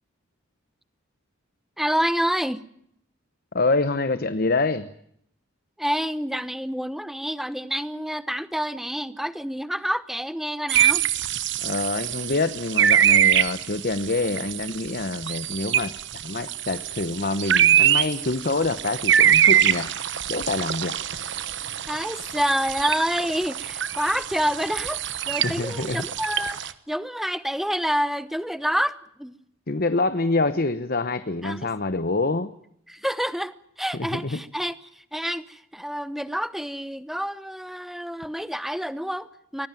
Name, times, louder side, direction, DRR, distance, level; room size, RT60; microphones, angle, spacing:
voice 1, 1.8-2.6 5.8-11.0 21.9-29.3 31.4-31.7 32.9-39.7, equal, ahead, 14 dB, 0.9 m, -28 dB
voice 2, 3.5-4.9 11.6-15.9 16.2-19.9 20.3-20.9 25.4-26.0 29.7-32.5 33.9-34.4, left 3 dB, 45° left, 12 dB, 1.0 m, -26 dB
sound 1, 10.7-26.7, right 10 dB, 55° right, 1.2 m, -23 dB
24.0 x 18.0 x 9.1 m, 0.72 s
head